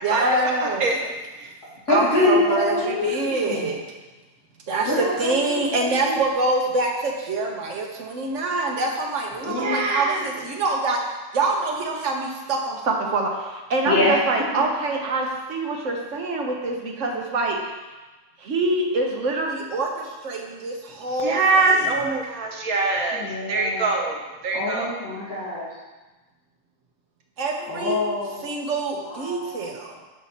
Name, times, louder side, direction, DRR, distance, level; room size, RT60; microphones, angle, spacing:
voice 1, 0.0-0.8 1.9-3.8 4.7-4.9 5.2-11.0 11.3-17.6 18.4-21.9 27.4-28.0 28.4-30.0, right 2 dB, 60° right, 0 dB, 1.3 m, -25 dB
voice 2, 1.9-3.7 4.9-5.5 5.7-6.2 9.4-9.8 13.8-14.2 23.1-24.0 24.5-25.7 27.7-28.5 29.0-29.7, left 2 dB, 60° left, -10 dB, 2.3 m, -25 dB
voice 3, 9.6-10.2 21.2-24.9, right 3 dB, 80° right, 1 dB, 1.4 m, -23 dB
6.3 x 5.5 x 4.2 m, 1.2 s
omnidirectional pair, 1.5 m